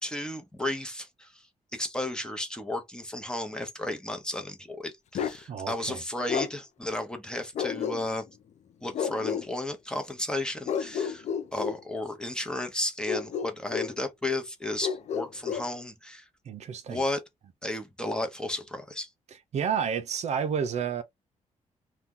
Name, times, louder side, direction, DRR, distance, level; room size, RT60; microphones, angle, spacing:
voice 1, 0.0-1.4 1.7-8.3 8.8-11.3 11.5-16.2 16.9-17.2 17.6-19.1, left 1 dB, 5° left, 0.8 m, -33 dB
Bark, 5.1-5.4 6.3-6.5 7.6-8.3 8.9-9.5 10.7-11.8 13.1-14.0 14.8-15.7, left 7 dB, 60° left, 0.5 m, -31 dB
voice 2, 5.5-6.0 16.4-17.0 19.5-21.0, right 7 dB, 60° right, 0.5 m, -30 dB
2.8 x 2.2 x 3.6 m
cardioid pair, 130°, 13 cm